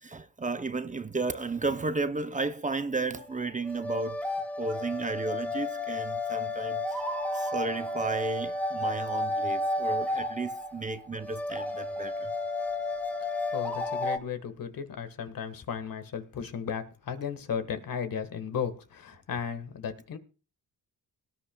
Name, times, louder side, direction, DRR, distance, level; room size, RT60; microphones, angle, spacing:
voice 1, 0.0-4.2 4.6-7.1 7.3-12.3, right 3 dB, 20° right, 0.7 m, -33 dB
sound 1, 3.2-14.2, left 2 dB, 5° left, 1.7 m, -32 dB
voice 2, 13.5-20.2, left 7 dB, 60° left, 1.6 m, -35 dB
18.5 x 10.5 x 2.3 m
cardioid pair, 95°, 38 cm